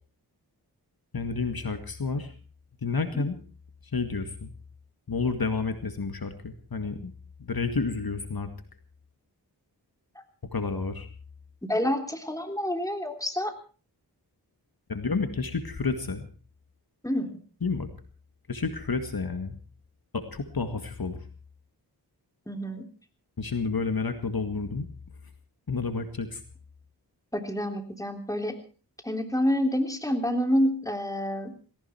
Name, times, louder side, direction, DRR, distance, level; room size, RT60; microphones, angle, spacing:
voice 1, 1.1-2.3 2.8-3.4 3.9-4.5 5.1-7.1 7.4-8.5 10.5-11.1 14.9-16.3 17.6-17.9 18.5-19.6 20.1-21.2 23.4-24.9 25.7-26.4, left 4 dB, 60° left, 8 dB, 2.1 m, -30 dB
voice 2, 11.6-13.5 17.0-17.4 22.5-22.9 27.3-28.6 29.0-31.5, equal, 10° left, 5 dB, 3.4 m, -28 dB
18.5 x 17.5 x 4.5 m, 0.38 s
wide cardioid pair, 50°, 40 cm